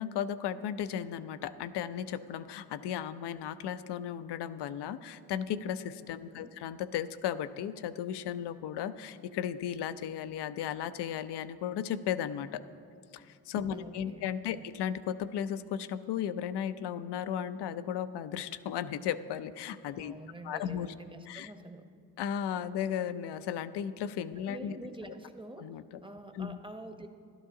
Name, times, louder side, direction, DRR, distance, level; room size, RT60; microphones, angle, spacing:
voice 1, 0.0-12.6 13.1-20.1 20.4-20.9 21.3-21.5 22.2-24.8 25.6-25.8 26.3-26.6, left 9 dB, 70° left, 13 dB, 0.6 m, -35 dB
voice 2, 6.1-6.6 13.7-14.7 20.0-21.9 24.4-27.1, right 1 dB, 10° right, 7 dB, 0.9 m, -47 dB
12.0 x 11.0 x 3.7 m, 2.3 s
supercardioid pair, 55°, 41 cm